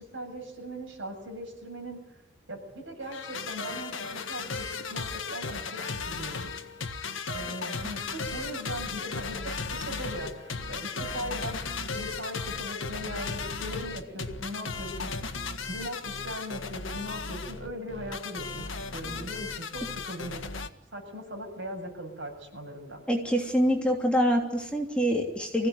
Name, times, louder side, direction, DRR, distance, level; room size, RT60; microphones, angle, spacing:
voice 1, 0.0-2.0 2.5-6.5 7.3-11.6 11.9-15.1 15.7-18.7 18.9-20.4 20.9-23.0, equal, 65° right, 2 dB, 7.2 m, -39 dB
sound 1, 3.0-20.7, left 4 dB, 75° left, 1.6 m, -36 dB
voice 2, 23.1-25.7, equal, 5° left, 0 dB, 3.1 m, -25 dB
24.5 x 16.5 x 9.6 m, 0.92 s
head